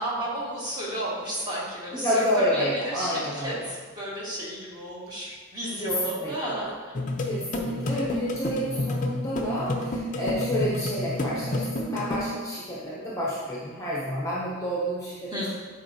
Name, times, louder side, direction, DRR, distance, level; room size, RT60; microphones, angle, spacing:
voice 1, 0.0-6.9 15.3-15.5, right 1 dB, 20° right, -7 dB, 1.8 m, -32 dB
voice 2, 1.9-3.6 5.8-6.5 7.2-15.5, equal, 15° left, -6 dB, 0.9 m, -29 dB
sound 1, 7.0-12.2, left 1 dB, 40° left, 0.6 m, -29 dB
9.7 x 4.2 x 2.8 m, 1.4 s
head